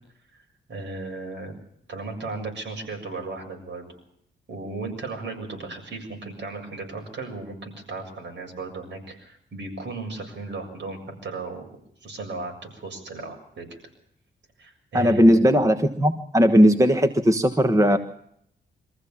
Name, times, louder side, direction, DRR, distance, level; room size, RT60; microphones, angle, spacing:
voice 1, 0.3-1.5 1.9-3.9 4.5-11.6 12.0-13.8 14.6-15.5, right 3 dB, 70° right, 3 dB, 7.2 m, -36 dB
voice 2, 14.9-18.0, equal, 15° right, 8 dB, 1.4 m, -18 dB
25.0 x 15.0 x 7.2 m, 0.71 s
cardioid pair, 110°, 20 cm